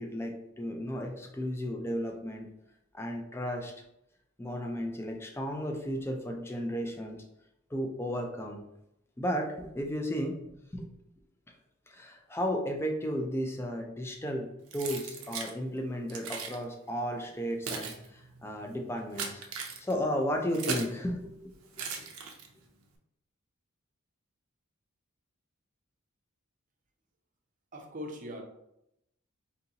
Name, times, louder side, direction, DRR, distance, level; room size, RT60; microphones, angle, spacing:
voice 1, 0.0-2.5 2.9-3.7 4.4-7.2 7.7-8.6 9.2-10.9 11.9-19.5 19.8-21.8, equal, 10° left, 2 dB, 0.4 m, -34 dB
Keys jangling, 14.7-15.5 16.1-16.6 17.3-21.0 21.7-22.7, right 5 dB, 85° right, 0.6 m, -38 dB
voice 2, 27.7-28.4, equal, 35° right, 1 dB, 0.6 m, -40 dB
3.9 x 2.8 x 2.8 m, 0.82 s
head